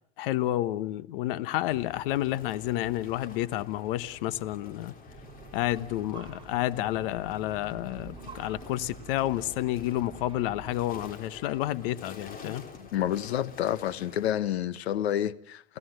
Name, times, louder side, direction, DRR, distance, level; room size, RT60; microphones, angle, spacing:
voice 1, 0.2-4.9 5.5-12.7, left 14 dB, 60° left, 1.2 m, -30 dB
sound 1, 1.7-14.3, left 4 dB, 25° left, 3.8 m, -49 dB
sound 2, 5.1-11.1, right 5 dB, 15° right, 5.8 m, -48 dB
voice 2, 12.8-15.6, left 11 dB, 80° left, 1.3 m, -29 dB
29.5 x 17.0 x 7.9 m
hypercardioid pair, 120°, 31 cm